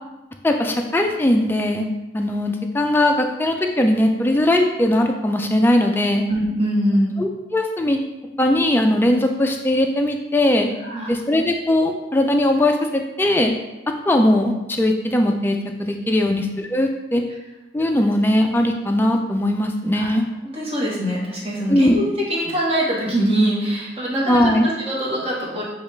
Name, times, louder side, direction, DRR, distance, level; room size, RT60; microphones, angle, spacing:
voice 1, 0.4-1.9 2.1-6.2 7.2-8.0 8.4-10.7 11.1-13.5 14.1-17.2 17.7-20.2 21.7-22.0 24.3-24.7, left 1 dB, 10° left, 3 dB, 0.3 m, -19 dB
voice 2, 6.3-7.1 10.8-11.1 16.2-16.3 19.9-20.1 20.5-25.6, equal, 30° right, -5 dB, 1.2 m, -23 dB
6.9 x 2.3 x 3.3 m, 1.0 s
head